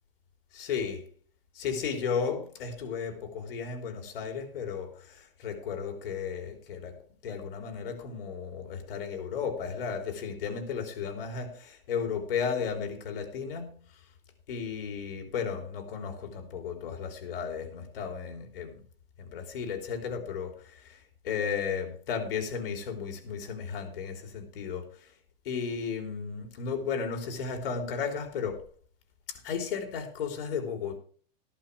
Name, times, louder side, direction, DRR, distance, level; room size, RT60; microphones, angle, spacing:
voice 1, 0.5-1.1 1.6-13.8 14.5-18.8 19.2-24.9 25.5-28.6 29.3-31.0, left 6 dB, 65° left, 3.5 m, -34 dB
14.0 x 11.5 x 3.4 m
supercardioid pair, 175°, 30 cm